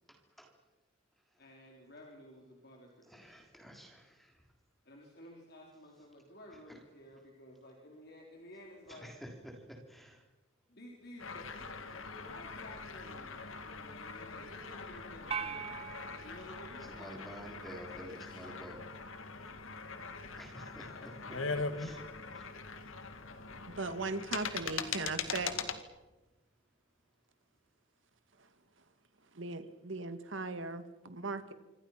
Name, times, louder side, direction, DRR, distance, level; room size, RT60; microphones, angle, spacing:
voice 1, 1.4-3.6 4.8-9.2 10.7-17.2 20.8-21.7, left 1 dB, 50° left, 0 dB, 4.1 m, -54 dB
voice 2, 3.1-4.3 9.0-9.1 9.9-10.2 16.2-16.4 17.0-18.8 20.4-21.1 21.8-22.0 22.3-22.5, equal, ahead, 2 dB, 3.8 m, -50 dB
sound 1, 11.2-25.8, left 5 dB, 75° left, 2.1 m, -42 dB
sound 2, 15.3-17.8, right 6 dB, 30° right, 1.4 m, -43 dB
voice 3, 23.7-25.5 29.3-31.5, right 3 dB, 65° right, 10 dB, 2.0 m, -38 dB
27.5 x 26.0 x 5.9 m, 1.1 s
head